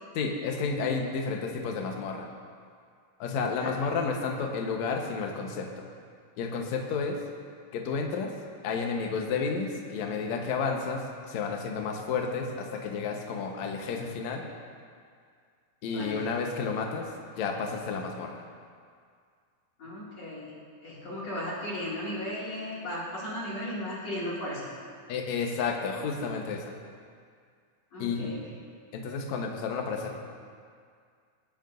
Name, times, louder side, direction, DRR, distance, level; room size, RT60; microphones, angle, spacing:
voice 1, 0.1-2.3 3.2-5.9 6.4-7.2 7.7-8.3 8.6-14.5 15.8-17.1 17.4-18.4 25.1-26.7 28.0-28.4 28.9-30.2, left 5 dB, 65° left, 1 dB, 1.9 m, -31 dB
voice 2, 15.9-16.3 19.8-24.7 27.9-28.5, left 1 dB, 45° left, -7 dB, 3.2 m, -36 dB
22.5 x 10.5 x 2.6 m, 2.1 s
omnidirectional pair, 4.6 m